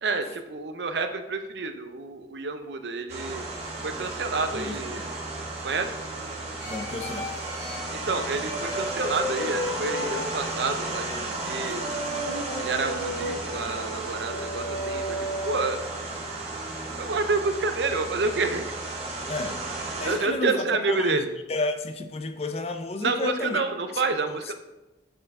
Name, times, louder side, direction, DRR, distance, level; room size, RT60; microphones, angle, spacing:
voice 1, 0.0-3.5 3.8-5.1 5.6-5.9 7.9-11.1 11.5-11.9 12.6-15.2 15.4-15.8 17.0-18.7 20.0-21.3 23.0-24.5, right 3 dB, 70° right, 8 dB, 0.6 m, -28 dB
sound 1, 3.1-20.2, right 2 dB, 35° right, 1.2 m, -34 dB
voice 2, 4.5-5.1 6.7-7.3 19.3-21.2 21.5-23.6, left 3 dB, 35° left, 8 dB, 0.5 m, -32 dB
sound 2, 6.6-15.9, equal, 85° left, 2.4 m, -34 dB
8.1 x 4.4 x 3.6 m, 1.0 s
head